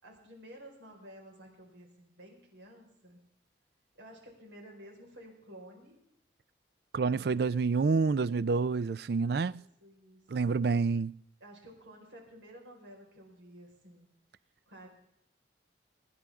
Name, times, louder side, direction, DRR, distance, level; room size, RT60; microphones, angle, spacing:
voice 1, 0.0-3.2 3.9-6.0 9.1-10.5 11.4-14.1 14.4-14.9, equal, 90° right, 4.7 m, -53 dB
voice 2, 6.9-9.6 10.3-11.1, right 4 dB, 55° right, 0.4 m, -28 dB
24.0 x 9.9 x 3.6 m
head